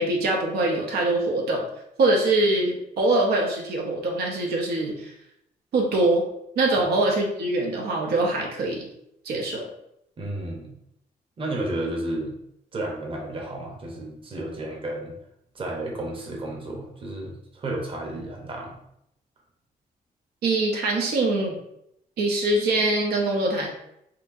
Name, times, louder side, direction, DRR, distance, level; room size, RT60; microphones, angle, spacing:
voice 1, 0.0-1.6 2.0-5.1 5.7-6.2 6.6-8.9 9.2-9.7 20.4-21.6 22.2-23.7, right 2 dB, 90° right, -1 dB, 0.8 m, -23 dB
voice 2, 10.2-10.7 11.4-12.4 12.7-15.1 15.5-18.8, right 1 dB, 35° right, -1 dB, 0.9 m, -32 dB
4.3 x 2.7 x 2.6 m, 0.78 s
cardioid pair, 125°, 16 cm